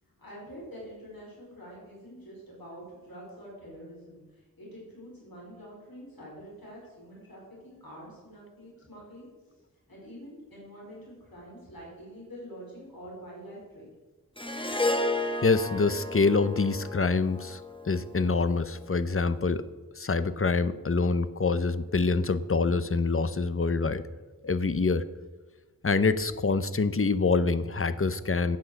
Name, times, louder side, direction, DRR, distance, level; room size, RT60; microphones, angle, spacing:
voice 1, 0.2-9.3 9.9-13.9, equal, 80° left, -4 dB, 4.7 m, -46 dB
Harp, 14.4-18.8, left 2 dB, 15° left, 1.1 m, -32 dB
voice 2, 15.4-19.7 20.0-24.0 24.4-25.0 25.8-28.6, left 4 dB, 40° left, 13 dB, 0.7 m, -26 dB
10.5 x 8.0 x 6.5 m, 1.3 s
wide cardioid pair, 50°, 35 cm